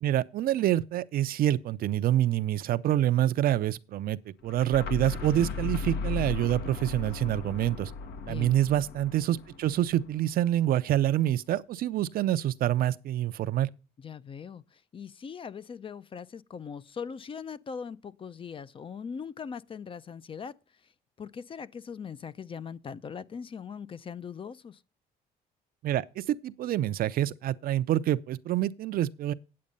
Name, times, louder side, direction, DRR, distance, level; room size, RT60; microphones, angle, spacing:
voice 1, 0.0-4.2 4.4-7.9 8.3-13.7 25.8-29.3, right 12 dB, 60° right, 0.6 m, -27 dB
sound 1, 4.4-10.2, left 4 dB, 80° left, 1.4 m, -36 dB
voice 2, 8.3-8.6 14.0-20.9 21.2-24.8, left 6 dB, 30° left, 0.5 m, -40 dB
8.6 x 8.6 x 5.3 m
cardioid pair, 110°, 17 cm